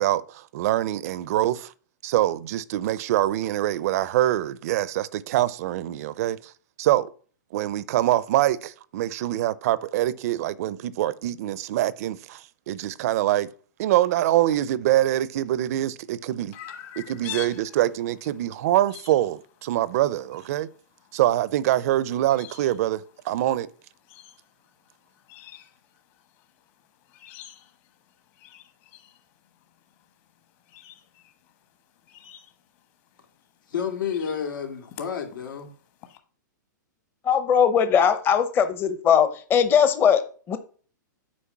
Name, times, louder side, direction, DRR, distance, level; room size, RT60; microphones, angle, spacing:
voice 1, 0.0-1.7 2.0-6.5 6.8-7.1 7.5-13.5 13.8-16.5 17.0-20.7 21.1-23.7, right 14 dB, 50° right, 0.6 m, -24 dB
Chirp tweet, 16.5-36.2, left 12 dB, 40° left, 1.2 m, -48 dB
voice 2, 33.7-35.7, left 7 dB, 85° left, 2.4 m, -30 dB
voice 3, 37.2-40.6, left 7 dB, 20° left, 0.7 m, -20 dB
8.6 x 5.0 x 5.9 m
hypercardioid pair, 145°, 10 cm